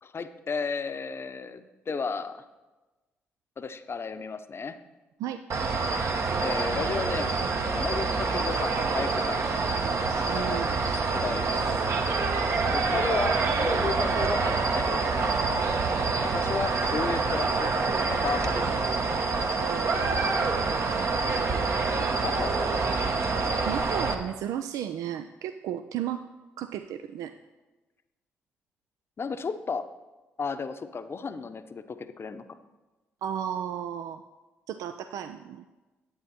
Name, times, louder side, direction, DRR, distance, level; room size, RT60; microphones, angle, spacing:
voice 1, 0.0-2.4 3.6-4.8 5.8-6.0 6.4-7.4 7.7-9.4 10.3-10.6 11.1-11.8 12.7-15.7 16.2-17.7 18.1-18.7 22.2-23.1 29.2-29.9 30.4-32.6, left 5 dB, 40° left, 10 dB, 0.8 m, -34 dB
sound 1, 5.5-24.1, right 4 dB, 50° right, 1.2 m, -26 dB
voice 2, 10.2-10.8 19.6-20.0 23.6-26.2 26.6-27.3 33.2-34.2 34.7-35.7, right 10 dB, 70° right, 10 dB, 0.4 m, -34 dB
11.5 x 8.7 x 4.3 m, 1.2 s
hypercardioid pair, 45°, 6 cm